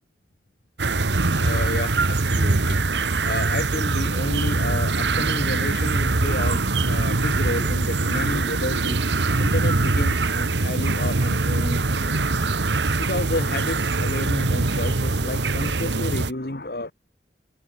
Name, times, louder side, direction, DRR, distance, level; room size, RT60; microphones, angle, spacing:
sound 1, 0.8-16.3, right 3 dB, 90° right, 1.3 m, -23 dB
voice 1, 1.4-2.8 3.2-9.0 9.4-12.5 13.0-16.9, left 2 dB, 60° left, 2.0 m, -31 dB
head